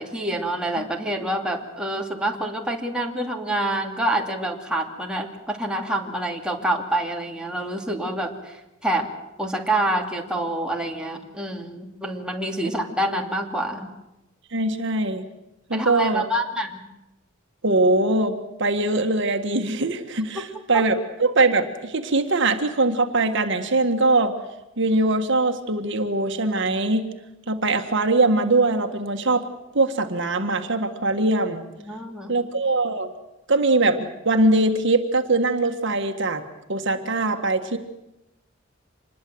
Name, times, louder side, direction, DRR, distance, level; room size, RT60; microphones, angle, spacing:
voice 1, 0.0-9.1 9.4-13.9 15.7-16.8 20.4-20.5 31.8-32.3, right 1 dB, 5° right, 0 dB, 2.6 m, -27 dB
voice 2, 14.5-15.2 15.7-16.2 17.6-24.3 24.8-27.1 27.5-29.5 29.7-31.6 32.3-33.1 33.5-36.4 36.7-37.8, right 2 dB, 60° right, 6 dB, 1.6 m, -22 dB
26.0 x 21.0 x 7.8 m, 0.92 s
head